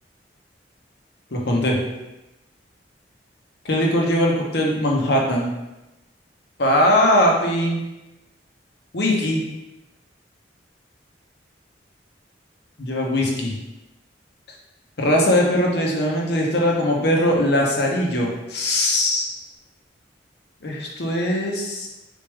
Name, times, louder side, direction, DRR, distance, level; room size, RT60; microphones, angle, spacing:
voice 1, 1.3-1.8 3.6-5.5 6.6-7.8 8.9-9.4 12.8-13.6 15.0-19.3 20.6-21.9, left 1 dB, 65° left, -1 dB, 0.9 m, -20 dB
4.0 x 3.5 x 3.3 m, 1.0 s
head